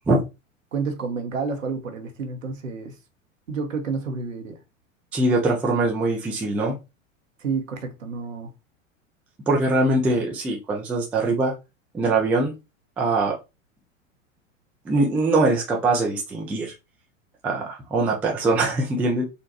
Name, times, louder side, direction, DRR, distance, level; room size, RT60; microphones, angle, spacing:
voice 1, 0.7-3.0 3.5-4.6 7.4-8.5, right 5 dB, 80° right, 0.8 m, -30 dB
voice 2, 5.1-6.8 9.5-11.5 11.9-12.5 13.0-13.3 14.9-16.7 17.4-19.2, right 2 dB, 5° right, 0.3 m, -22 dB
3.9 x 2.2 x 2.6 m
figure-of-eight pair, 95°, 39 cm